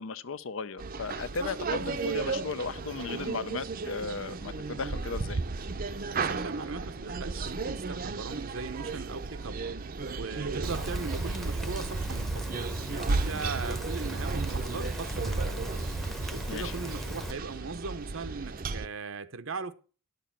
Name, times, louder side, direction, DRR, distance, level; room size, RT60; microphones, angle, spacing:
voice 1, 0.0-5.4 16.5-16.7, left 4 dB, 75° left, 0.6 m, -36 dB
sound 1, 0.8-18.9, right 3 dB, 45° right, 0.6 m, -34 dB
voice 2, 6.1-9.6 10.1-12.6 12.9-15.7 16.3-19.7, right 4 dB, 80° right, 0.9 m, -39 dB
Rain, 10.6-17.3, equal, ahead, 0.7 m, -38 dB
10.0 x 6.8 x 5.7 m
head